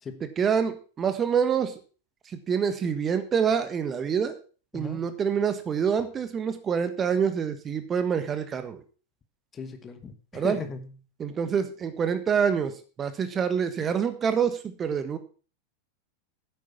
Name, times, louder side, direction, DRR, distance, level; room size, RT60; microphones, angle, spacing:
voice 1, 0.4-1.8 2.3-4.4 4.7-8.8 10.3-10.6 11.2-12.7 13.0-15.2, right 7 dB, 25° right, 10 dB, 1.3 m, -26 dB
voice 2, 4.7-5.1 9.5-11.0, left 5 dB, 20° left, 9 dB, 1.3 m, -38 dB
10.0 x 8.3 x 5.8 m, 0.38 s
figure-of-eight pair, 90°, 0 cm